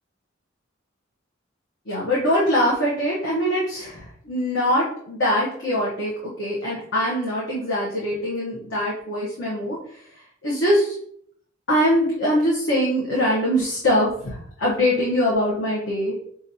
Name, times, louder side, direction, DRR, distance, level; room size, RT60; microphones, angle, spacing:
voice 1, 1.9-6.1 6.4-9.8 10.4-10.9 11.7-16.1, equal, 65° left, -6 dB, 1.0 m, -22 dB
5.7 x 2.5 x 2.7 m, 0.64 s
head